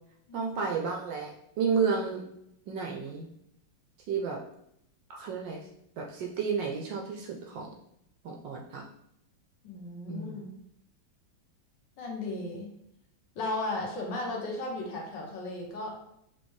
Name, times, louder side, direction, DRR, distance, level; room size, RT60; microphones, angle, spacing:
voice 1, 0.3-1.3 1.6-2.2 2.7-3.3 4.1-4.4 5.1-5.6 6.0-7.7 8.2-8.8 10.1-10.4, right 5 dB, 75° right, 1 dB, 1.1 m, -31 dB
voice 2, 9.6-10.5 12.0-12.7 13.4-16.0, left 2 dB, 65° left, -1 dB, 1.4 m, -35 dB
4.3 x 3.2 x 3.1 m, 0.76 s
omnidirectional pair, 2.3 m